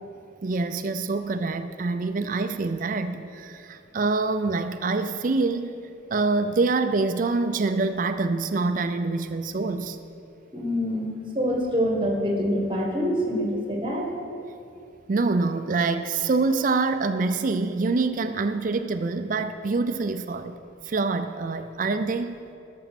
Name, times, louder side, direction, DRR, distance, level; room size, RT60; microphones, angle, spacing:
voice 1, 0.4-5.7 6.1-10.0 15.1-20.6 20.8-22.4, right 3 dB, 40° right, 9 dB, 0.4 m, -25 dB
voice 2, 10.5-14.1, equal, 25° right, 1 dB, 1.4 m, -25 dB
13.0 x 6.9 x 5.9 m, 2.6 s
head